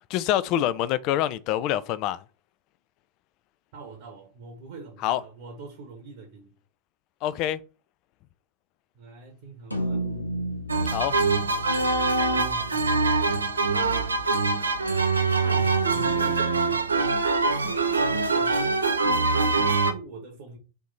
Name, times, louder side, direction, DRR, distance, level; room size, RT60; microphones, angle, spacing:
voice 1, 0.1-2.2 5.0-5.2 7.2-7.6 10.9-11.2, left 12 dB, 40° left, 0.3 m, -26 dB
voice 2, 3.7-6.5 8.9-10.3 12.3-13.3 15.3-16.9 17.5-18.7 19.5-20.6, right 3 dB, 50° right, 1.0 m, -43 dB
sound 1, 9.7-14.2, right 1 dB, 90° left, 0.6 m, -34 dB
sound 2, 10.7-19.9, right 3 dB, 75° right, 0.4 m, -24 dB
3.4 x 2.7 x 3.9 m
figure-of-eight pair, 90°, 0 cm